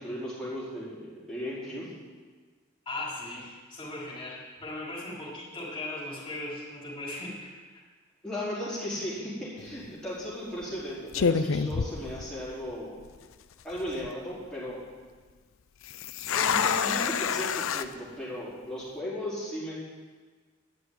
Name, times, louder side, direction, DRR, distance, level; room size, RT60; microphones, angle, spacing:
voice 1, 0.0-1.9 8.2-13.0 13.6-14.8 16.3-19.7, left 1 dB, 5° left, -10 dB, 4.5 m, -36 dB
voice 2, 2.8-7.5, left 2 dB, 25° left, -7 dB, 4.6 m, -38 dB
sound 1, 9.6-9.9 10.6-10.8 11.1-12.7 13.0-13.1 13.7-14.1 15.8-17.9, left 6 dB, 85° left, 0.5 m, -28 dB
12.0 x 6.8 x 9.4 m, 1.5 s
head